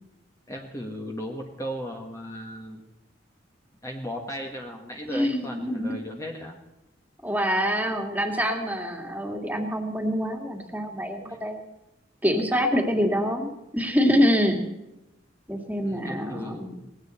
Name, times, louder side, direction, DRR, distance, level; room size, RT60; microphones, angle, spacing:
voice 1, 0.5-2.8 3.8-6.6 11.3-11.4 15.8-16.9, equal, 15° left, 1 dB, 1.6 m, -36 dB
voice 2, 5.1-6.0 7.2-11.6 12.2-14.6 15.5-16.7, equal, 10° right, 3 dB, 2.3 m, -25 dB
19.0 x 17.0 x 4.4 m, 0.93 s
head